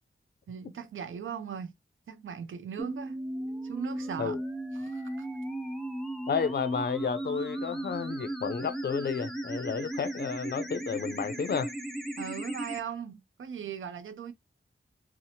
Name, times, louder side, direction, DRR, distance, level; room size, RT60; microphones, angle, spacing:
voice 1, 0.5-1.7 2.1-3.2 3.6-4.4 4.7-5.3 12.2-14.3, right 7 dB, 75° right, 0.4 m, -38 dB
sound 1, 2.8-12.8, right 1 dB, ahead, 0.5 m, -36 dB
voice 2, 6.3-11.7, left 6 dB, 55° left, 0.4 m, -32 dB
2.8 x 2.0 x 2.7 m
wide cardioid pair, 75°, 20 cm